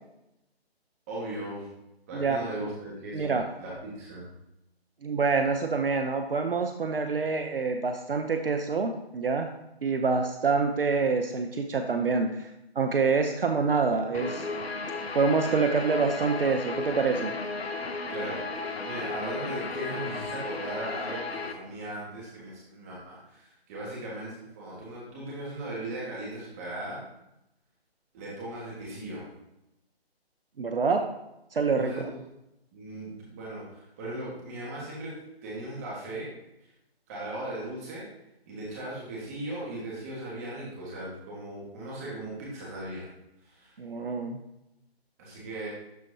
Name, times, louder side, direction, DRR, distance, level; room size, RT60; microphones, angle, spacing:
voice 1, 1.1-1.7 2.1-4.3 18.1-27.0 28.1-29.3 31.7-32.2 32.7-35.2 35.4-36.3 37.1-38.0 38.5-43.1 43.4-43.7 45.2-45.7, right 1 dB, 15° right, -5 dB, 1.7 m, -38 dB
voice 2, 2.1-2.7 3.1-3.4 5.0-9.5 9.8-12.5 12.8-14.5 15.1-17.3 30.6-31.1 31.5-32.1 43.8-44.4, right 4 dB, 60° right, 6 dB, 0.8 m, -26 dB
Guitar, 14.1-21.5, left 3 dB, 70° left, 1.0 m, -34 dB
12.0 x 4.3 x 2.8 m, 0.87 s
hypercardioid pair, 165°, 32 cm